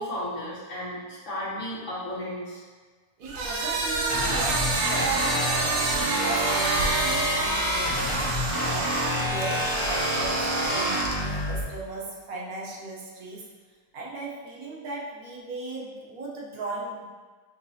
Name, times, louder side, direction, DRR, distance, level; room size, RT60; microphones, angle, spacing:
voice 1, 0.0-2.6, left 1 dB, 60° left, -8 dB, 1.3 m, -34 dB
sound 1, 3.2-11.4, right 3 dB, 60° right, 0.9 m, -28 dB
voice 2, 3.2-5.2 5.9-8.2 8.6-13.5 13.9-17.0, right 2 dB, 90° right, -3 dB, 1.3 m, -37 dB
sound 2, 4.1-11.6, equal, 35° left, 0.5 m, -28 dB
5.8 x 3.1 x 2.7 m, 1.5 s
omnidirectional pair, 1.5 m